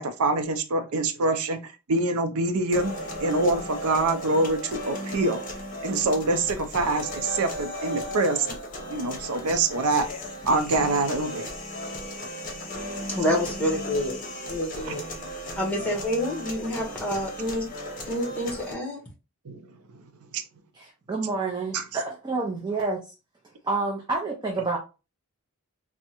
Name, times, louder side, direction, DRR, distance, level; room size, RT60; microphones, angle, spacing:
voice 1, 0.0-2.9 3.2-5.4 5.8-8.6 8.9-10.1 10.5-11.5 14.9-15.0 19.5-19.6 19.9-20.0 20.3-20.4 21.7-21.8, right 2 dB, 80° right, 9 dB, 0.5 m, -25 dB
sound 1, 2.7-18.7, equal, 35° left, 0.8 m, -36 dB
voice 2, 13.1-14.2 14.5-15.0 15.6-17.7 18.1-19.0, left 1 dB, 5° left, -2 dB, 1.0 m, -27 dB
voice 3, 20.7-23.1 23.6-24.8, right 3 dB, 20° right, -1 dB, 0.4 m, -29 dB
3.4 x 2.1 x 2.9 m, 0.30 s
head